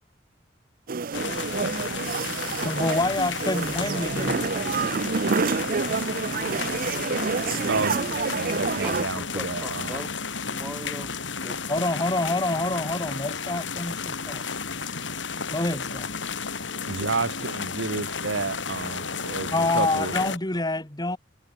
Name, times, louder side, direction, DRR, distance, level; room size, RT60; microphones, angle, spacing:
sound 1, 0.9-9.0, right 4 dB, 50° right, 0.6 m, -28 dB
sound 2, 1.1-20.4, left 5 dB, 85° left, 4.4 m, -33 dB
voice 1, 2.6-5.0 11.7-14.4 15.5-16.1 19.5-21.2, left 2 dB, 20° left, 2.1 m, -27 dB
voice 2, 7.7-10.1 16.9-20.1, right 3 dB, 80° right, 1.2 m, -31 dB
voice 3, 8.8-10.3 10.5-11.6, right 1 dB, 10° right, 5.0 m, -39 dB
head